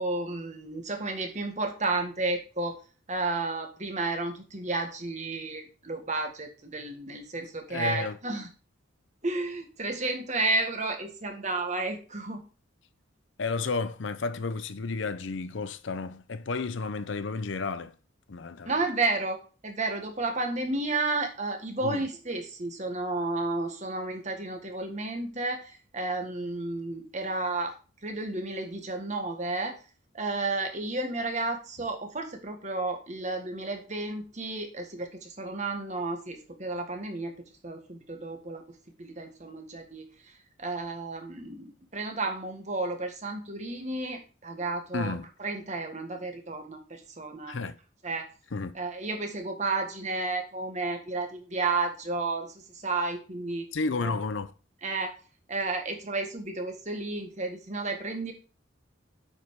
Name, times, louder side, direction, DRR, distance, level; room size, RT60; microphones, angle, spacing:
voice 1, 0.0-2.7 3.1-8.5 9.2-12.4 18.6-27.7 28.0-29.8 30.1-37.3 37.6-38.6 39.0-40.1 40.6-47.6 48.0-48.3 48.7-53.6 54.0-54.2 54.8-55.1 55.5-58.3, right 2 dB, 35° right, 1.6 m, -32 dB
voice 2, 7.7-8.2 13.4-17.9 18.3-18.7 21.8-22.1 44.9-45.3 47.5-47.8 48.5-48.8 53.7-54.5, left 4 dB, 70° left, 0.6 m, -32 dB
8.2 x 5.4 x 4.7 m
head